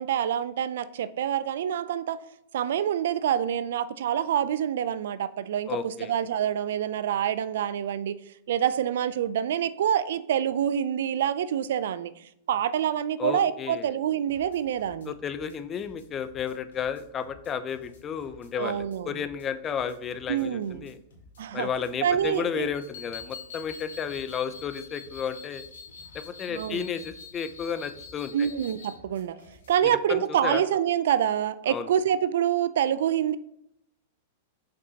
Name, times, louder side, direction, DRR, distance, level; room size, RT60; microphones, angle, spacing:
voice 1, 0.0-2.2 2.5-8.2 8.5-12.1 12.5-15.1 18.6-19.2 20.3-20.9 21.4-21.7 22.0-22.7 26.5-26.9 28.3-29.4 29.7-33.4, right 9 dB, 75° right, 15 dB, 0.4 m, -26 dB
voice 2, 5.7-6.1 13.2-13.9 15.1-21.0 21.5-25.6 26.1-28.5 30.1-30.6 31.7-31.9, left 7 dB, 25° left, 11 dB, 0.5 m, -32 dB
sound 1, 14.3-29.9, left 2 dB, 85° left, 2.2 m, -55 dB
sound 2, 22.7-29.0, left 5 dB, 65° left, 0.9 m, -45 dB
6.8 x 5.3 x 2.8 m, 0.77 s
hypercardioid pair, 120°, 0 cm